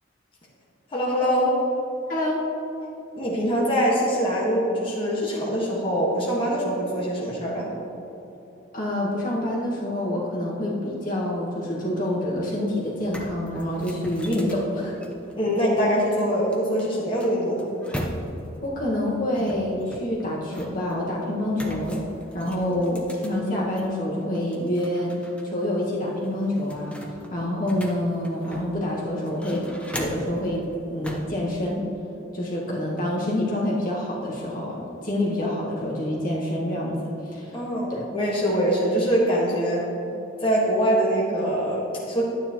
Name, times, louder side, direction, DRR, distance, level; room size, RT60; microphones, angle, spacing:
voice 1, 0.9-1.5 3.2-7.7 15.3-17.7 22.7-23.0 37.5-39.9 40.4-42.2, equal, 30° left, -5 dB, 1.7 m, -23 dB
voice 2, 2.1-2.4 8.7-15.0 18.6-22.0 22.3-25.1 25.4-27.0 27.3-29.7 29.9-31.9 32.3-37.6 37.9-38.0, left 1 dB, 45° left, -4 dB, 1.7 m, -27 dB
sound 1, 12.5-12.6 12.9-15.6 16.5-18.6 19.3-21.0 21.5-23.9 24.3-25.4 25.7-25.8 26.2-28.9 29.3-30.4 31.0-31.4, equal, 5° left, 0.8 m, -37 dB
11.0 x 9.5 x 3.1 m, 3.0 s
head